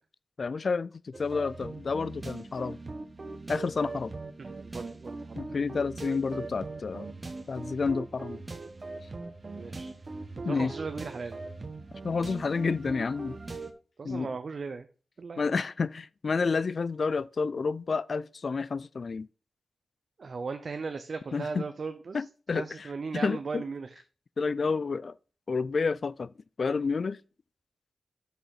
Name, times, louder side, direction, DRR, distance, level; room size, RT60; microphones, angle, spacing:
voice 1, 0.4-2.8 3.5-4.1 5.4-7.1 7.5-8.4 10.4-10.7 12.0-13.4 14.0-14.3 15.4-19.3 21.3-21.6 22.1-22.9 23.2-23.6 24.4-25.2 25.5-26.3 26.6-27.2, left 4 dB, 60° left, 0.3 m, -30 dB
sound 1, 1.1-13.7, right 3 dB, 45° right, 1.2 m, -41 dB
voice 2, 4.4-5.4 9.5-9.9 10.4-11.4 14.0-14.9 15.2-15.5 20.2-22.2 22.5-24.0, right 4 dB, 65° right, 0.6 m, -37 dB
6.5 x 5.5 x 5.7 m
cardioid pair, 50°, 0 cm